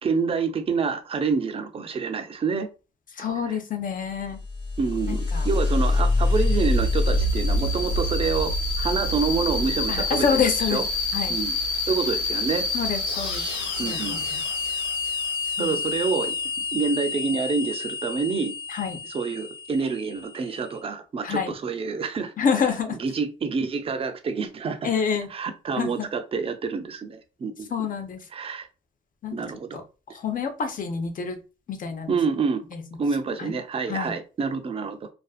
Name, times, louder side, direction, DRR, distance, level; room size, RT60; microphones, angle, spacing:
voice 1, 0.0-2.7 3.5-3.6 4.8-10.3 10.7-10.8 11.3-11.6 11.9-12.7 13.8-14.2 15.6-16.3 16.7-18.5 19.1-22.3 23.0-24.9 25.3-27.7 28.3-28.7 29.3-29.8 32.1-32.6 33.0-35.1, right 5 dB, 30° right, 7 dB, 0.4 m, -27 dB
voice 2, 3.1-4.4 5.1-5.5 9.9-10.8 11.1-11.3 12.7-13.4 13.7-14.4 15.6-15.7 18.7-19.0 21.2-21.5 22.4-23.0 24.8-25.3 25.8-26.1 27.7-28.3 29.2-29.8 30.1-31.4 31.7-32.2 32.7-32.8 33.4-33.5 33.9-34.1, left 6 dB, 45° left, 7 dB, 0.5 m, -27 dB
sound 1, 4.3-20.6, left 2 dB, 85° left, 1.2 m, -27 dB
2.4 x 2.3 x 2.3 m, 0.33 s
cardioid pair, 90°, 20 cm